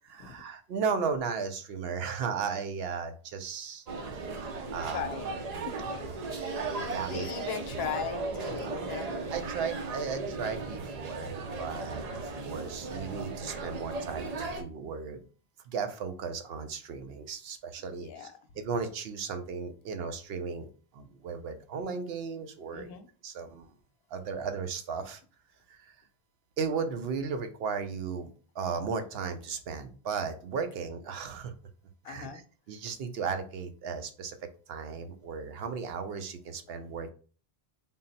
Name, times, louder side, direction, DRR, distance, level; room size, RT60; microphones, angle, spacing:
voice 1, 0.1-3.8 4.7-5.0 6.9-7.3 8.9-9.1 9.3-15.2 15.7-18.3 18.6-20.7 20.9-22.9 23.2-23.7 24.1-25.2 25.7-26.0 26.6-31.5 32.1-32.3 32.7-34.4 34.7-37.1, right 5 dB, 75° right, 8 dB, 0.8 m, -35 dB
sound 1, 3.9-14.6, right 3 dB, 50° right, 0.6 m, -36 dB
voice 2, 4.8-5.7 6.4-6.6 7.1-9.2 11.6-11.9 18.0-18.3 22.7-23.1 32.0-32.4, left 8 dB, 75° left, 8 dB, 0.8 m, -38 dB
3.7 x 2.0 x 4.0 m, 0.38 s
omnidirectional pair, 1.0 m